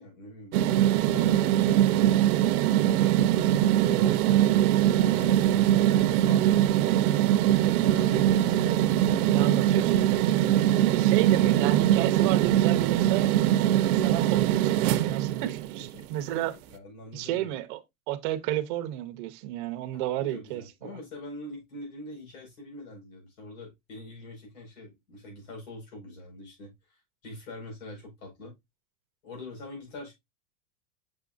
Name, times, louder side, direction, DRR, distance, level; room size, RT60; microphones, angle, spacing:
voice 1, 0.0-7.4 7.7-9.6 15.9-17.6 19.9-28.5 29.2-30.1, left 2 dB, 65° left, 5.0 m, -44 dB
sound 1, 0.5-15.9, right 12 dB, 75° right, 0.7 m, -22 dB
voice 2, 9.2-10.5 10.9-13.3 13.9-16.5 17.1-17.8 18.1-21.0, right 13 dB, 35° right, 0.7 m, -32 dB
6.3 x 6.1 x 2.5 m
supercardioid pair, 170°, 46 cm